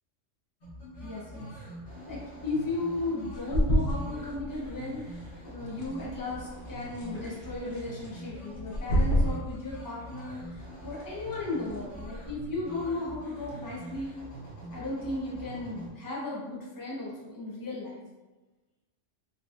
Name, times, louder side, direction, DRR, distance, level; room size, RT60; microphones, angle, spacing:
sound 1, 0.6-15.9, right 1 dB, 65° left, 1.7 m, -44 dB
voice 1, 1.0-1.5 2.1-14.1 14.7-18.0, left 2 dB, 20° left, -5 dB, 0.7 m, -35 dB
sound 2, 3.3-13.6, equal, 90° left, 1.3 m, -33 dB
4.5 x 3.0 x 2.4 m, 1.2 s
omnidirectional pair, 1.3 m